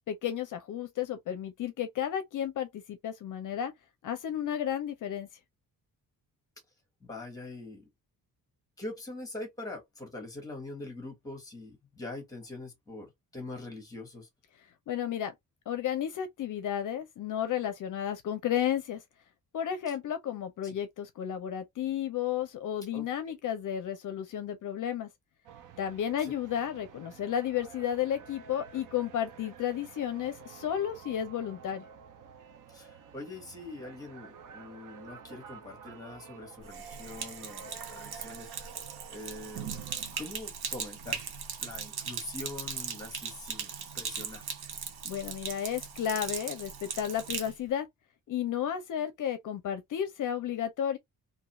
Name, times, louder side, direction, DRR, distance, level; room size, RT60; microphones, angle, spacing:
voice 1, 0.1-3.7 4.0-5.3 14.9-15.3 15.7-19.0 19.5-25.1 25.8-31.8 45.0-47.9 48.3-51.0, left 9 dB, 60° left, 0.5 m, -32 dB
voice 2, 7.0-7.8 8.8-14.3 20.6-20.7 22.9-23.1 26.2-26.3 32.7-38.7 39.1-39.8 40.2-41.2 41.6-44.5, left 2 dB, 10° left, 1.1 m, -43 dB
sound 1, 25.4-40.0, right 7 dB, 60° right, 0.6 m, -50 dB
Sink (filling or washing), 36.6-47.5, right 7 dB, 90° right, 0.8 m, -39 dB
2.6 x 2.3 x 2.9 m
wide cardioid pair, 175°, 36 cm